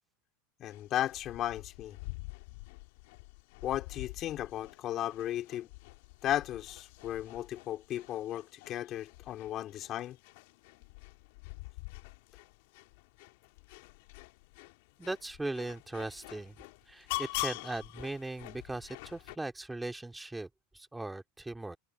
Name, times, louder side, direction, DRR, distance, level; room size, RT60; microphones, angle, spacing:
sound 1, 0.6-19.4, left 26 dB, 65° left, 2.5 m, -45 dB
voice 1, 0.6-2.0 3.6-5.7 6.2-10.2, left 12 dB, 45° left, 3.1 m, -35 dB
voice 2, 15.0-16.6 16.9-20.5 20.7-21.8, right 2 dB, 10° right, 2.9 m, -39 dB
hypercardioid pair, 100°, 0 cm